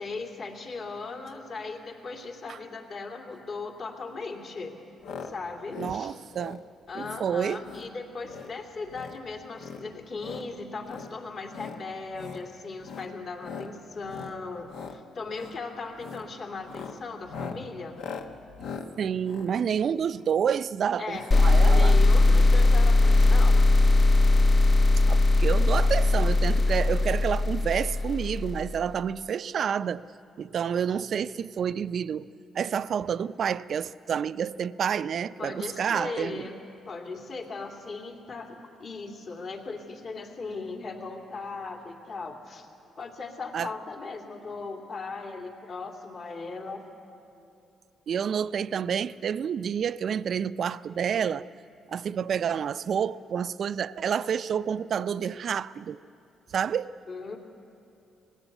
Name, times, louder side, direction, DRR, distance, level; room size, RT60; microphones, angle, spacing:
voice 1, 0.0-4.8 5.2-6.1 6.9-17.9 21.0-21.2 21.6-23.6 35.4-36.6 36.9-42.7 43.0-46.8 57.1-57.4, left 3 dB, 55° left, 2.9 m, -38 dB
sound 1, 5.0-5.3 5.6-6.0 6.3-6.6 7.0-7.2 7.6-7.9 8.2-8.5 8.8-9.2 9.6-10.5 10.8-11.1 11.5-11.8 12.1-12.4 12.8-13.1 13.4-13.7 14.0-14.4 14.6-15.0 15.3-15.6 16.0-16.3 16.6-20.3 21.1-21.3 21.6-21.7 21.9-22.0, left 5 dB, 80° left, 1.2 m, -40 dB
voice 2, 5.8-6.6 6.9-7.6 19.0-22.0 25.1-30.1 30.4-32.3 32.5-36.4 43.5-43.7 48.1-51.5 51.9-56.0 56.5-56.9, right 8 dB, 60° right, 0.5 m, -29 dB
sound 2, 21.3-28.8, left 2 dB, 40° left, 0.5 m, -20 dB
19.0 x 17.0 x 8.1 m
cardioid pair, 90°, 0 cm